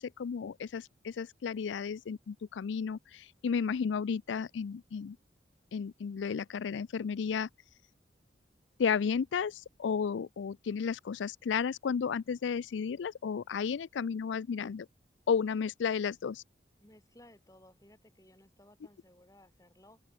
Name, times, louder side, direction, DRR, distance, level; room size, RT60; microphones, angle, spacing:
voice 1, 0.0-5.2 5.7-7.5 8.8-14.9 15.3-16.4, left 6 dB, 85° left, 0.4 m, -33 dB
voice 2, 16.8-20.0, left 1 dB, 20° left, 6.7 m, -59 dB
open air
head